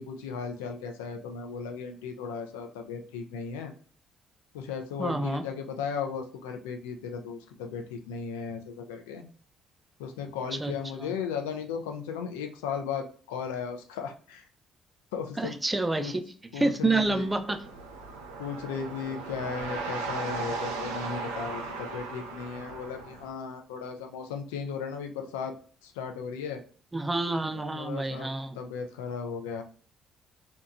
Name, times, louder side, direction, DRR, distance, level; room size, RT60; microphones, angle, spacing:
voice 1, 0.0-3.7 4.5-9.3 10.0-14.4 15.1-15.6 16.0-16.1 16.5-17.3 18.4-25.5 25.8-26.6 27.4-28.3 28.5-29.6, left 6 dB, 85° left, 5 dB, 0.4 m, -36 dB
voice 2, 5.0-5.4 10.6-10.7 11.0-11.1 15.4-16.2 16.6-17.6 26.9-28.6, right 2 dB, 20° right, 7 dB, 0.4 m, -28 dB
sound 1, 16.9-23.3, right 3 dB, 90° right, 0.4 m, -37 dB
2.8 x 2.2 x 2.4 m, 0.44 s
hypercardioid pair, 50°, 0 cm